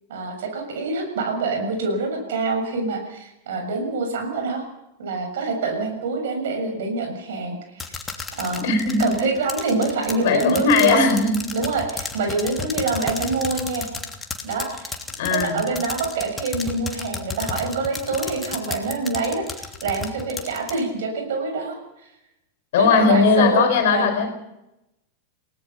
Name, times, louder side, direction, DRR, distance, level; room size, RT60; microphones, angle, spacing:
voice 1, 0.1-4.6 5.0-7.9 8.3-8.7 9.0-11.1 11.5-13.9 14.4-14.9 15.3-22.1 22.8-24.2, right 3 dB, 60° right, 4 dB, 6.8 m, -26 dB
sound 1, 7.8-20.8, left 4 dB, 15° left, 3.0 m, -32 dB
voice 2, 8.6-9.1 10.2-11.4 15.2-15.7 22.7-24.3, left 5 dB, 55° left, 8 dB, 4.4 m, -18 dB
29.5 x 18.5 x 5.8 m, 0.90 s
figure-of-eight pair, 90°, 0 cm